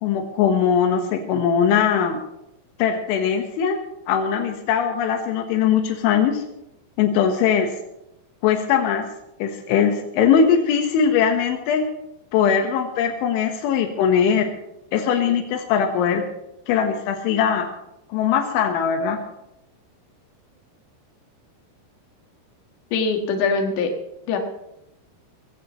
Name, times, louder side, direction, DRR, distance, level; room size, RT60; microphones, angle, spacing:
voice 1, 0.0-2.2 2.8-3.8 4.1-6.4 7.0-7.7 8.4-9.0 9.4-11.9 12.3-14.5 14.9-16.2 16.7-17.7 18.1-19.2, left 7 dB, 90° left, 5 dB, 3.7 m, -20 dB
voice 2, 22.9-23.9 24.3-24.4, left 4 dB, 70° left, 3 dB, 3.8 m, -22 dB
22.0 x 16.0 x 3.1 m, 0.86 s
omnidirectional pair, 5.3 m